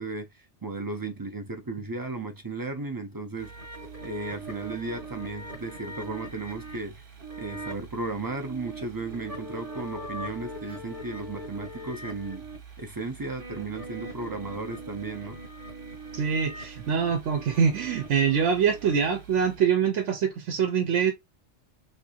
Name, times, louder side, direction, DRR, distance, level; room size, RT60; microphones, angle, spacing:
voice 1, 0.0-3.5 4.0-7.0 7.4-12.4 12.8-15.4, right 3 dB, 30° right, 0.4 m, -35 dB
sound 1, 3.4-19.6, right 2 dB, 50° right, 1.2 m, -41 dB
voice 2, 16.1-21.1, right 7 dB, 80° right, 1.0 m, -24 dB
3.3 x 2.5 x 2.8 m
omnidirectional pair, 1.2 m